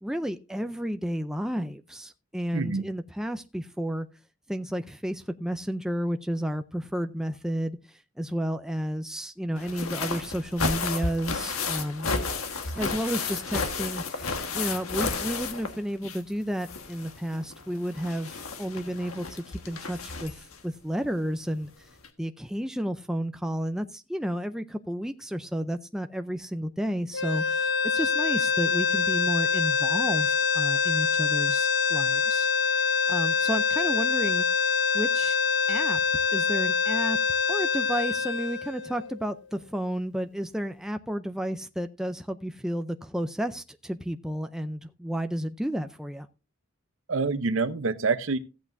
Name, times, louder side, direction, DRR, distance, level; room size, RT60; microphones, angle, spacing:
voice 1, 0.0-4.1 4.5-12.1 12.7-21.7 22.2-32.5 33.1-34.5 34.9-35.4 35.7-36.0 36.3-37.2 37.5-46.3, equal, 5° right, 0.4 m, -32 dB
voice 2, 2.5-2.8 47.1-48.4, right 4 dB, 70° right, 0.8 m, -26 dB
sound 1, 9.6-16.3 16.6-20.6 21.6-21.7 22.0-22.1, left 4 dB, 85° left, 1.5 m, -32 dB
sound 2, 27.1-39.4, left 5 dB, 55° left, 0.8 m, -25 dB
15.0 x 8.5 x 2.6 m
head